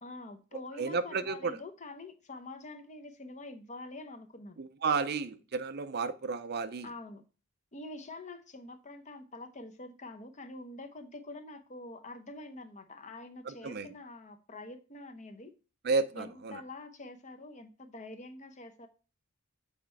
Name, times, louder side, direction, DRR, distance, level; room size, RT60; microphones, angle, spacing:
voice 1, 0.0-4.6 6.8-7.2 7.7-15.5 16.1-18.9, left 2 dB, 35° left, 0.8 m, -46 dB
voice 2, 0.8-1.6 4.6-6.9 13.5-13.9 15.8-16.6, right 4 dB, 45° right, 0.5 m, -32 dB
7.4 x 4.3 x 4.5 m
head